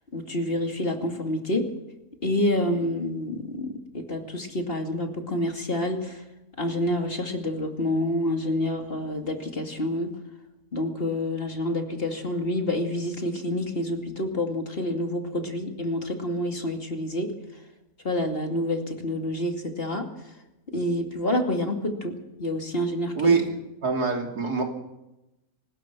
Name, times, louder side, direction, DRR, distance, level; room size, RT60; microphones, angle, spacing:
voice 1, 0.1-1.6 2.2-6.2 6.6-10.1 10.7-17.3 18.0-20.0 20.7-22.1 22.4-23.4, left 1 dB, 40° left, 4 dB, 2.6 m, -28 dB
voice 2, 23.1-24.6, right 4 dB, 85° right, 2 dB, 3.7 m, -24 dB
24.0 x 20.0 x 6.1 m, 0.95 s
omnidirectional pair, 1.6 m